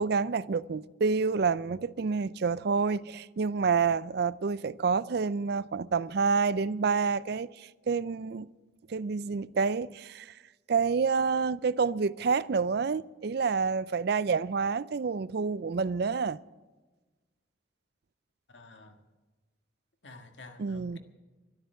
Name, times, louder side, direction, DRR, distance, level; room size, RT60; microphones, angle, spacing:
voice 1, 0.0-8.5 8.9-10.3 10.7-16.4 20.6-21.0, right 5 dB, 55° right, 0.4 m, -28 dB
voice 2, 18.5-18.9 20.0-21.0, left 2 dB, 70° left, 1.7 m, -50 dB
13.0 x 12.5 x 7.8 m
head